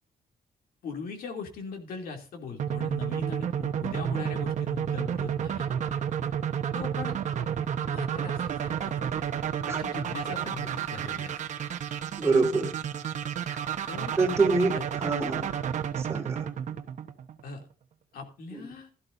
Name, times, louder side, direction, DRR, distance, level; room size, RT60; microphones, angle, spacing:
voice 1, 0.8-5.6 6.7-7.2 7.9-8.9 9.5-11.3 13.9-14.1 14.7-14.8 17.4-17.6 18.1-18.9, left 4 dB, 80° left, 3 dB, 2.8 m, -40 dB
sound 1, 2.6-17.5, right 8 dB, 55° right, 1.1 m, -31 dB
voice 2, 12.2-12.7 13.5-13.6 14.2-15.5 16.0-16.5 18.5-18.6, right 3 dB, 20° right, 0 dB, 3.8 m, -26 dB
16.5 x 13.0 x 2.7 m, 0.31 s
wide cardioid pair, 165°, 15 cm